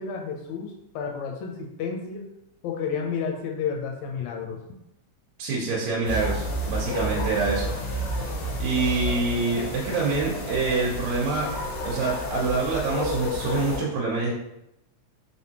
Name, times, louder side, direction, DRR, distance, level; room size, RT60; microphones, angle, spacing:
voice 1, 0.0-2.3 2.6-4.6, left 6 dB, 80° left, 1 dB, 1.9 m, -31 dB
voice 2, 5.4-8.1 8.6-11.5 11.9-14.3, right 3 dB, 75° right, -3 dB, 1.9 m, -26 dB
sound 1, 6.0-13.8, equal, 60° left, 1.6 m, -30 dB
4.5 x 3.4 x 2.8 m, 0.85 s
omnidirectional pair, 3.5 m